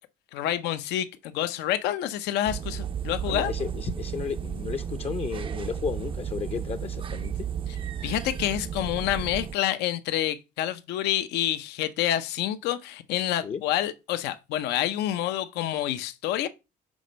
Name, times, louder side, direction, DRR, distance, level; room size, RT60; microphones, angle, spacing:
voice 1, 0.3-3.5 8.0-16.5, left 12 dB, 85° left, 0.7 m, -28 dB
sound 1, 2.4-9.5, right 8 dB, 30° right, 0.4 m, -33 dB
voice 2, 3.3-7.5 13.4-13.6, left 6 dB, 35° left, 0.6 m, -33 dB
6.3 x 4.2 x 5.1 m
cardioid pair, 110°, 17 cm